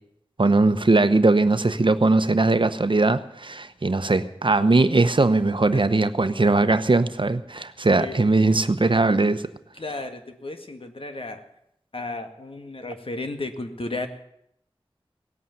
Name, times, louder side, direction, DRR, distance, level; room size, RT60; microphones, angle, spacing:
voice 1, 0.4-9.4, right 3 dB, 55° right, 11 dB, 1.0 m, -20 dB
voice 2, 8.0-8.6 9.8-11.4 11.9-14.1, left 2 dB, 65° left, 6 dB, 1.8 m, -34 dB
18.0 x 8.7 x 9.4 m, 0.76 s
wide cardioid pair, 45°, 10 cm